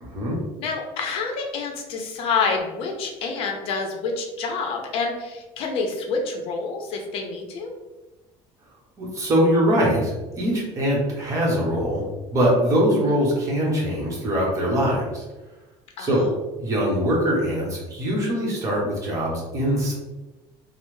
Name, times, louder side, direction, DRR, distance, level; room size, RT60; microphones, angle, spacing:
voice 1, 0.0-0.4 9.0-12.0 12.3-15.2 16.0-16.2 16.6-19.9, equal, 30° right, -4 dB, 1.0 m, -22 dB
voice 2, 0.6-7.7 13.0-13.2 16.0-16.3, left 4 dB, 55° left, 2 dB, 0.6 m, -28 dB
3.2 x 2.0 x 3.1 m, 1.1 s
cardioid pair, 145°, 11 cm